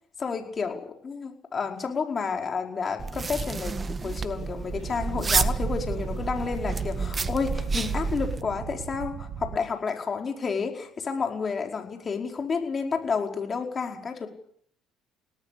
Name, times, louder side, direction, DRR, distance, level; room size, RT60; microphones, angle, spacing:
voice 1, 0.2-3.7 4.0-14.3, left 5 dB, 35° left, 3 dB, 4.9 m, -30 dB
sound 1, 3.0-8.4, right 4 dB, 30° right, 1.6 m, -29 dB
sound 2, 4.7-9.6, right 10 dB, 65° right, 1.9 m, -39 dB
27.5 x 18.5 x 6.8 m, 0.64 s
hypercardioid pair, 65°, 0 cm